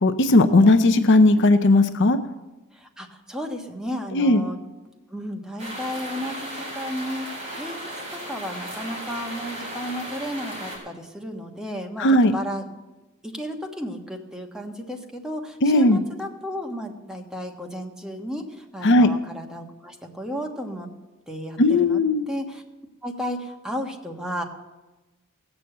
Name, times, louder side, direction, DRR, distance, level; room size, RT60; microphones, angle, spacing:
voice 1, 0.0-2.2 4.1-4.4 12.0-12.3 15.6-16.0 18.8-19.1 21.6-22.2, left 2 dB, 55° left, 9 dB, 0.7 m, -17 dB
voice 2, 2.7-4.6 5.1-7.8 8.1-12.7 13.2-20.9 21.3-22.6 23.0-24.4, equal, 5° right, 2 dB, 1.4 m, -33 dB
sound 1, 5.6-10.8, right 1 dB, 30° right, 6.4 m, -35 dB
17.5 x 7.0 x 7.8 m, 1.1 s
head